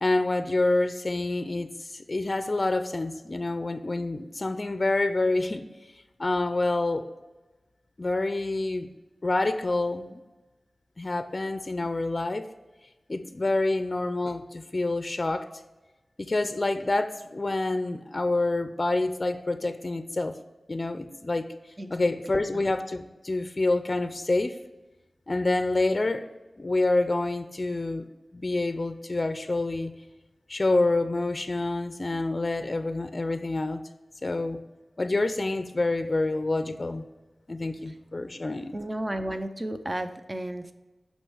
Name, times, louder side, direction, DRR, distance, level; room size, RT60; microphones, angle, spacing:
voice 1, 0.0-5.7 6.2-7.1 8.0-8.9 9.2-10.2 11.0-12.5 13.1-15.5 16.2-20.4 20.7-21.5 21.9-24.6 25.3-26.3 26.6-29.9 30.5-33.8 34.2-34.6 35.0-37.1 37.5-38.7, left 2 dB, 40° left, 10 dB, 0.5 m, -27 dB
voice 2, 38.7-40.7, right 1 dB, 25° right, 9 dB, 0.6 m, -32 dB
6.5 x 5.4 x 6.4 m, 1.1 s
wide cardioid pair, 90°, 0 cm